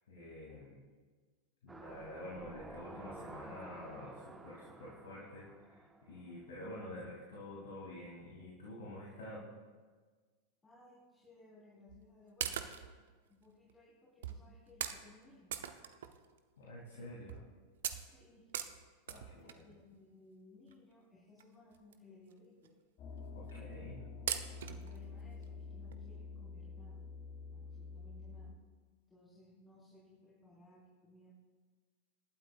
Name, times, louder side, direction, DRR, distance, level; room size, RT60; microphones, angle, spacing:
voice 1, 0.1-0.8 1.6-9.5 16.6-17.4 19.1-19.7 23.3-24.0, left 1 dB, 60° left, -5 dB, 2.9 m, -48 dB
sound 1, 1.7-6.6 6.9-7.0, right 3 dB, 10° right, 0.7 m, -52 dB
voice 2, 10.6-12.6 13.3-15.5 17.0-17.1 18.1-18.5 19.1-22.7 24.7-27.0 27.5-28.5 29.1-31.3, left 2 dB, 15° left, -10 dB, 4.3 m, -61 dB
sound 2, 11.9-12.0 12.4-13.0 13.7-13.8 14.2-14.4 14.8-15.0 15.5-16.4 16.8-16.9 17.3-17.5 17.8-19.7 20.7-20.8 21.4-21.5 21.7-21.9 22.3-22.4 22.6-22.7 23.5-23.8 24.3-25.0 25.4-25.5 25.9-26.0, right 9 dB, 60° right, 0.8 m, -40 dB
sound 3, 23.0-28.5, left 4 dB, 35° left, 2.0 m, -48 dB
27.0 x 12.0 x 2.5 m, 1.4 s
figure-of-eight pair, 90°, 0 cm